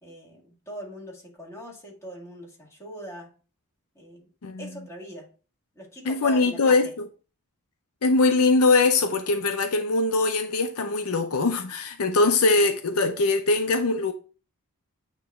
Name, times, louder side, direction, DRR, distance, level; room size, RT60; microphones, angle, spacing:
voice 1, 0.0-3.3 4.0-4.2 4.6-5.3 5.8-6.9, equal, 15° left, 2.0 m, -41 dB
voice 2, 6.1-6.9 8.0-14.1, left 3 dB, 70° left, 0.6 m, -22 dB
8.9 x 3.0 x 3.6 m
head